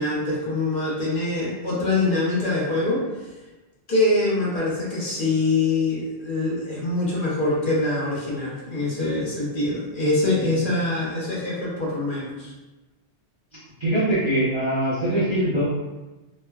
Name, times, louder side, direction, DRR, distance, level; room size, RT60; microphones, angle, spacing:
voice 1, 0.0-3.3 3.9-12.5, left 2 dB, 55° left, -7 dB, 0.8 m, -24 dB
voice 2, 13.8-15.6, right 1 dB, 35° right, -11 dB, 0.6 m, -23 dB
3.2 x 2.1 x 2.2 m, 1.1 s
omnidirectional pair, 1.2 m